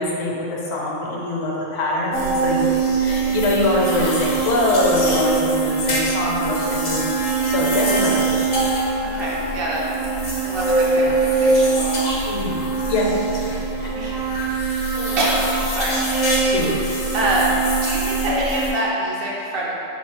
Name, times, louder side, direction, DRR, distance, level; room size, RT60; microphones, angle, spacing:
voice 1, 0.0-8.6 12.2-13.1 13.5-13.9 14.9-15.2 16.5-16.7, left 2 dB, 70° left, -3 dB, 1.0 m, -24 dB
sound 1, 2.1-18.7, right 3 dB, 45° left, 0.4 m, -22 dB
Wind instrument woodwind instrument, 6.3-13.5, equal, 75° right, 1.3 m, -35 dB
voice 2, 9.0-11.0 11.4-12.0 13.9-14.3 15.2-16.0 17.1-17.5 17.8-19.7, right 1 dB, 60° right, -4 dB, 0.7 m, -25 dB
3.7 x 2.9 x 2.8 m, 2.8 s
omnidirectional pair, 1.4 m